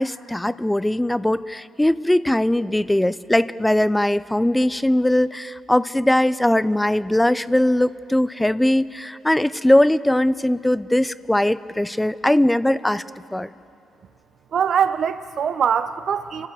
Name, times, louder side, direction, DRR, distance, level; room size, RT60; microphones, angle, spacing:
voice 1, 0.0-13.0 13.3-13.5, left 1 dB, 5° left, 16 dB, 0.5 m, -20 dB
voice 2, 14.5-16.5, right 7 dB, 60° right, 11 dB, 0.6 m, -22 dB
27.0 x 15.5 x 8.3 m, 2.8 s
cardioid pair, 90°, 0 cm